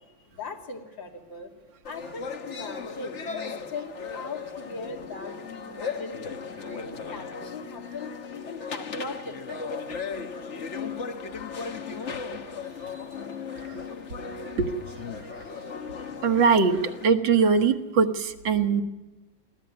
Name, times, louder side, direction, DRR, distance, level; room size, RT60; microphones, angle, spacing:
voice 1, 0.4-1.5 1.8-3.5 3.7-6.2 6.6-9.6, left 3 dB, 85° left, 1 dB, 3.0 m, -39 dB
sound 1, 1.8-17.1, left 5 dB, 45° left, 1.3 m, -37 dB
voice 2, 16.2-18.8, right 5 dB, 85° right, 6 dB, 2.0 m, -22 dB
24.0 x 15.0 x 9.6 m, 1.1 s
omnidirectional pair, 2.0 m